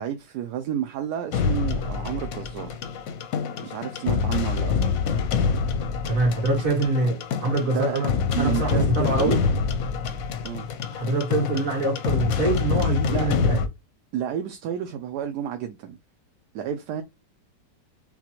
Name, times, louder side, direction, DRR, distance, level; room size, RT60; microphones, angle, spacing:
voice 1, 0.0-2.8 3.6-4.7 7.6-8.1 8.3-9.4 10.4-10.6 13.1-13.3 14.1-16.0 16.5-17.0, right 10 dB, 75° right, 1.1 m, -30 dB
sound 1, 1.3-13.7, left 6 dB, 65° left, 0.9 m, -26 dB
voice 2, 6.1-8.1 8.4-9.4 10.9-13.6, right 2 dB, 45° right, 2.3 m, -24 dB
5.8 x 2.3 x 2.9 m
omnidirectional pair, 1.9 m